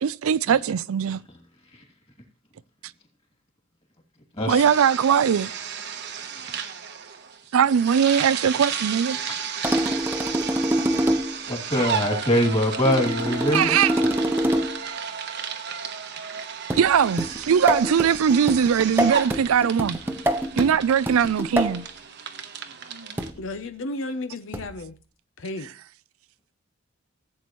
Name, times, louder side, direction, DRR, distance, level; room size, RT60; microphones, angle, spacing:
voice 1, 0.0-1.2 4.5-5.5 7.5-9.2 13.5-13.9 16.7-20.0 20.6-21.9, right 7 dB, 80° right, 0.4 m, -20 dB
sound 1, 4.6-23.3, right 7 dB, 50° right, 1.0 m, -33 dB
sound 2, 9.6-11.4 12.9-14.9 16.7-21.8 23.2-23.5 24.5-24.9, equal, 10° right, 0.8 m, -26 dB
voice 2, 11.5-13.7, left 1 dB, 25° left, 2.5 m, -23 dB
voice 3, 23.4-25.0 25.4-25.7, left 2 dB, 60° left, 0.7 m, -33 dB
15.0 x 8.5 x 3.1 m
head